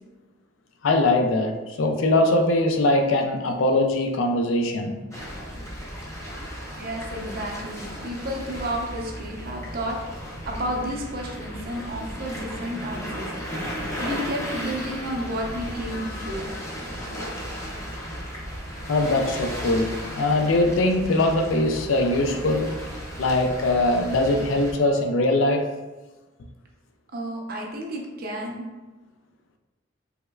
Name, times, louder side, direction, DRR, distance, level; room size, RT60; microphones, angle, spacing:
voice 1, 0.8-5.0 15.9-16.4 18.9-22.7 23.2-25.6, left 2 dB, 75° left, 4 dB, 0.4 m, -22 dB
sound 1, 5.1-24.7, equal, 15° left, 0.6 m, -35 dB
voice 2, 6.8-10.0 10.4-13.3 14.0-16.5 27.1-28.7, equal, 50° right, 0 dB, 0.6 m, -31 dB
3.4 x 3.0 x 2.2 m, 1.2 s
head